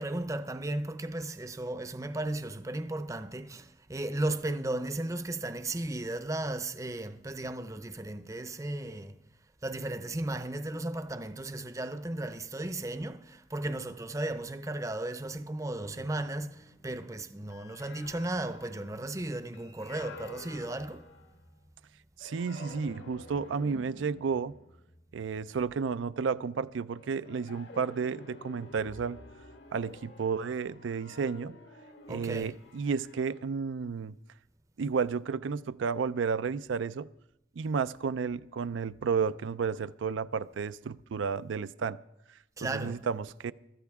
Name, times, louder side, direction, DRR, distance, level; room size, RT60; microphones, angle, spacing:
voice 1, 0.0-9.2 9.6-21.1 32.1-32.5 42.6-43.0, right 1 dB, 15° right, 0.6 m, -35 dB
sound 1, 15.8-21.7 22.2-26.1 26.9-33.5, left 2 dB, 70° left, 1.5 m, -51 dB
voice 2, 22.2-24.5 25.1-29.2 29.7-31.6 32.1-34.2 34.8-37.1 37.6-42.0 42.6-43.5, right 5 dB, 90° right, 0.4 m, -32 dB
23.0 x 13.5 x 3.5 m
head